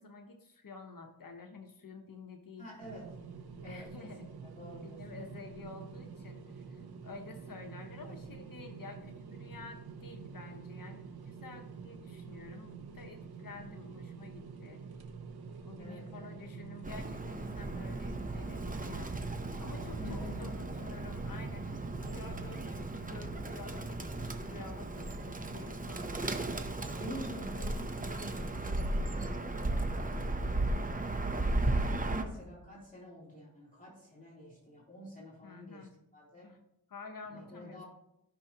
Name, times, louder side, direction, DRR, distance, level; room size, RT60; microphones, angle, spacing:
voice 1, 0.0-2.7 3.6-4.3 4.8-14.8 15.6-26.3 32.0-32.4 35.4-35.9 36.4-36.6 36.9-37.8, left 4 dB, 65° left, 4 dB, 1.1 m, -50 dB
voice 2, 2.6-3.1 3.6-5.2 8.1-8.4 15.8-16.6 19.8-20.9 26.9-31.3 32.0-36.5 37.3-37.9, left 1 dB, 20° left, -6 dB, 3.2 m, -48 dB
sound 1, 2.8-22.7, right 5 dB, 90° right, 0.9 m, -48 dB
Bird, 16.8-32.2, right 2 dB, 20° right, 0.7 m, -36 dB
14.5 x 5.8 x 2.9 m, 0.80 s
wide cardioid pair, 115°, 37 cm